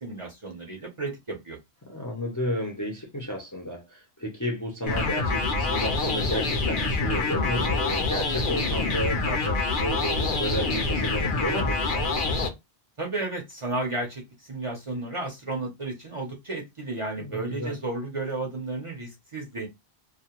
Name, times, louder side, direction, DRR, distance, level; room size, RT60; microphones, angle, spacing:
voice 1, 0.0-1.6 13.0-14.2 14.5-19.7, right 2 dB, 35° right, 0.6 m, -33 dB
voice 2, 1.9-12.2 17.2-17.7, equal, 25° left, 0.5 m, -32 dB
sound 1, 4.9-12.5, left 3 dB, 60° left, 0.7 m, -26 dB
2.3 x 2.2 x 2.9 m
omnidirectional pair, 1.0 m